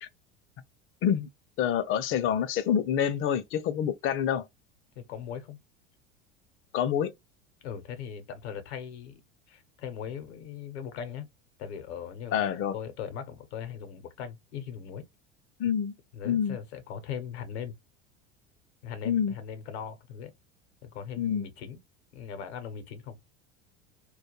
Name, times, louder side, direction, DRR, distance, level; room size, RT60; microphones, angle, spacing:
voice 1, 1.6-4.5 6.7-7.1 12.3-12.7 15.6-15.9 16.2-16.6 19.0-19.3 21.2-21.5, left 9 dB, 40° left, 0.5 m, -27 dB
voice 2, 5.0-5.6 7.6-9.2 9.5-11.3 11.6-15.1 16.1-17.8 18.8-20.3 20.8-21.8 22.1-23.2, left 8 dB, 80° left, 0.8 m, -39 dB
2.3 x 2.2 x 2.9 m
hypercardioid pair, 85°, 33 cm